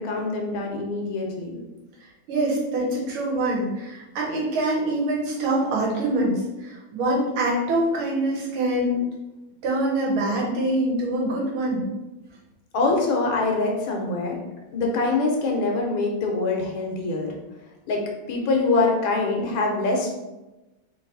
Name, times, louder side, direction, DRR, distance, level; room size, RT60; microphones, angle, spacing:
voice 1, 0.0-1.6 12.7-14.4 14.7-17.3 17.9-20.1, left 3 dB, 75° left, 1 dB, 1.6 m, -24 dB
voice 2, 2.3-9.0 9.6-11.9, right 1 dB, 80° right, -2 dB, 1.9 m, -24 dB
3.9 x 3.1 x 3.9 m, 1.0 s
omnidirectional pair, 2.3 m